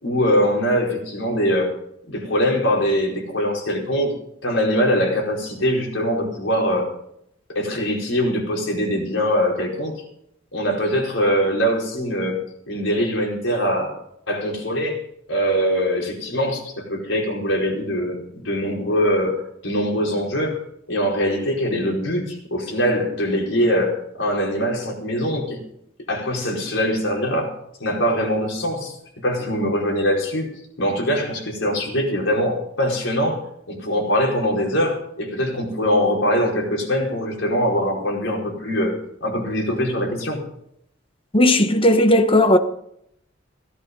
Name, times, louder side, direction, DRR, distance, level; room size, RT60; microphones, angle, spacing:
voice 1, 0.0-1.7 2.1-4.1 4.4-6.9 7.5-9.9 10.5-12.4 12.7-13.9 14.3-15.0 15.3-19.4 19.6-20.6 20.9-25.6 26.1-27.5 27.8-28.9 29.2-30.5 30.8-33.4 33.7-40.4, equal, 85° left, 4.9 m, -22 dB
voice 2, 41.3-42.6, left 1 dB, 30° left, 1.1 m, -15 dB
17.5 x 11.0 x 5.5 m
head